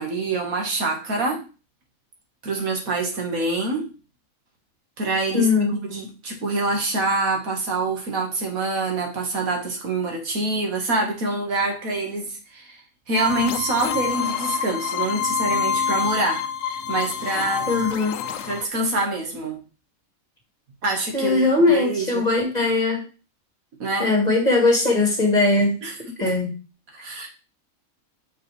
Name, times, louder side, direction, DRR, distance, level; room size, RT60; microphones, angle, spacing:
voice 1, 0.0-1.4 2.4-3.9 5.0-12.8 13.1-17.7 18.4-19.6 20.8-22.3 23.8-24.1 25.8-26.3 26.9-27.3, right 2 dB, 80° right, 1 dB, 2.0 m, -26 dB
voice 2, 5.3-5.8 17.7-18.1 21.1-23.0 24.0-25.7 26.2-26.5, left 3 dB, 30° left, -2 dB, 2.2 m, -20 dB
sound 1, 13.1-18.7, left 7 dB, 70° left, 0.9 m, -27 dB
6.6 x 5.2 x 3.3 m, 0.32 s
omnidirectional pair, 1.5 m